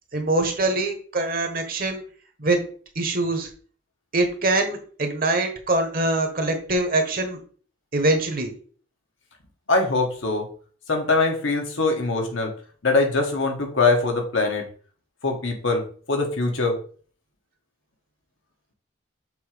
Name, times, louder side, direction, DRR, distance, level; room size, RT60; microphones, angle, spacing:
voice 1, 0.1-2.0 2.4-2.6 2.9-3.5 4.1-7.4 7.9-8.5, right 2 dB, 45° right, 5 dB, 1.2 m, -23 dB
voice 2, 9.7-10.5 10.9-12.5 12.8-14.6 15.2-16.7, left 3 dB, 75° left, 2 dB, 1.5 m, -22 dB
6.7 x 3.0 x 5.0 m, 0.43 s
head